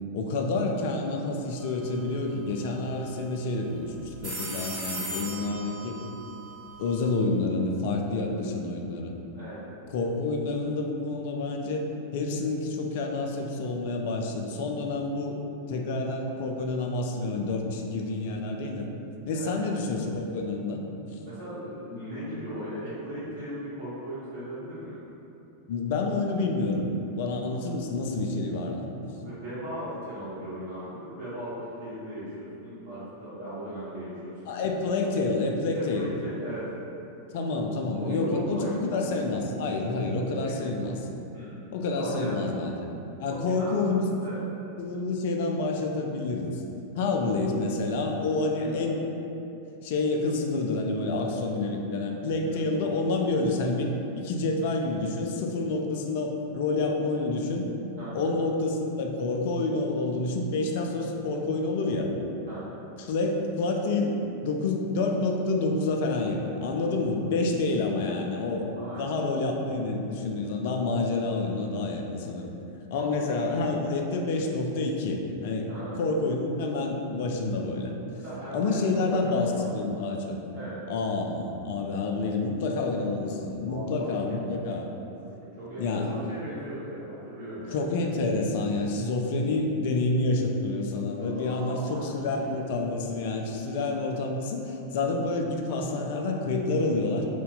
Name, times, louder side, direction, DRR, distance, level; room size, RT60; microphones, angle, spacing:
voice 1, 0.1-5.9 6.8-9.1 9.9-11.8 12.1-15.4 15.7-18.9 19.2-20.8 25.7-29.1 34.5-36.1 37.3-41.0 41.7-42.9 43.2-44.1 44.8-46.6 47.0-49.0 49.8-57.7 58.1-62.1 63.0-68.7 68.9-72.5 72.9-75.7 76.0-77.9 78.5-80.3 80.9-84.9 85.8-86.1 87.7-97.3, left 3 dB, 50° left, 2 dB, 0.3 m, -28 dB
sound 1, 1.6-2.1 4.0-7.2, right 1 dB, 30° right, 1.2 m, -38 dB
voice 2, 19.3-19.8 21.2-25.0 29.2-34.5 35.0-35.1 35.7-36.7 38.0-39.0 40.4-40.8 41.3-41.6 41.9-42.4 43.2-43.9 44.2-44.4 48.6-48.9 52.4-52.8 58.0-58.2 62.5-62.8 68.7-69.1 72.9-73.4 75.7-76.0 78.1-80.1 80.5-80.8 83.6-84.4 85.2-87.8 91.2-92.5, equal, 55° right, -12 dB, 0.9 m, -38 dB
2.7 x 2.1 x 3.8 m, 2.9 s
figure-of-eight pair, 90°, 0 cm